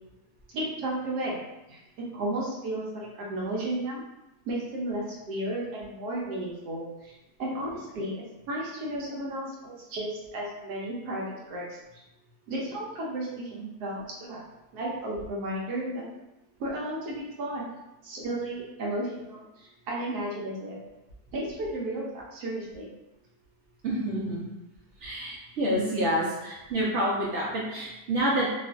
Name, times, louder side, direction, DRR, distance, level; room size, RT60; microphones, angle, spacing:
voice 1, 0.5-1.4 1.7-4.0 4.4-7.1 7.4-11.8 12.5-14.4 14.7-16.1 16.6-17.7 18.0-20.8 21.3-22.9, right 1 dB, 80° right, -4 dB, 1.2 m, -33 dB
voice 2, 23.8-24.4 25.0-28.5, right 1 dB, 60° right, -5 dB, 0.8 m, -28 dB
2.8 x 2.4 x 2.4 m, 0.96 s
omnidirectional pair, 1.7 m